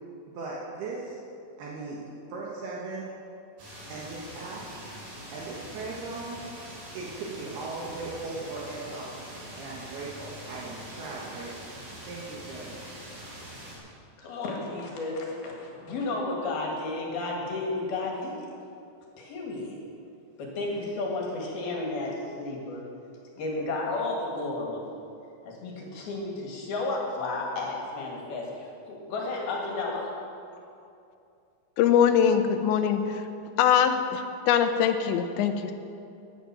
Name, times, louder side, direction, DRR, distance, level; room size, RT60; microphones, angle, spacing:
voice 1, 0.3-1.2 1.6-2.0 2.3-3.1 3.9-4.7 5.3-6.4 6.9-9.1 9.6-11.7 12.1-12.8, right 3 dB, 70° right, -4 dB, 3.2 m, -38 dB
sound 1, 3.6-13.8, right 1 dB, 50° right, 4.9 m, -43 dB
voice 2, 14.2-18.4 19.2-19.8 20.4-22.8 23.4-24.9 25.5-30.1, left 2 dB, 65° left, -1 dB, 3.6 m, -32 dB
voice 3, 31.8-33.3 33.6-35.7, left 8 dB, 90° left, 8 dB, 3.1 m, -23 dB
15.0 x 10.5 x 6.0 m, 2.6 s
omnidirectional pair, 5.1 m